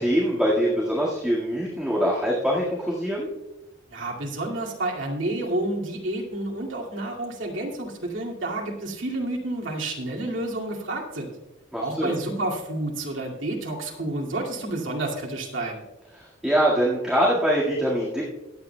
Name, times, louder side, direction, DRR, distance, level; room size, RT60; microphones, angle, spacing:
voice 1, 0.0-3.3 11.7-12.2 16.2-18.2, equal, 5° right, -6 dB, 1.8 m, -23 dB
voice 2, 3.9-11.3 11.8-15.8, right 2 dB, 80° right, -1 dB, 2.2 m, -30 dB
23.0 x 8.9 x 2.3 m, 1.0 s
head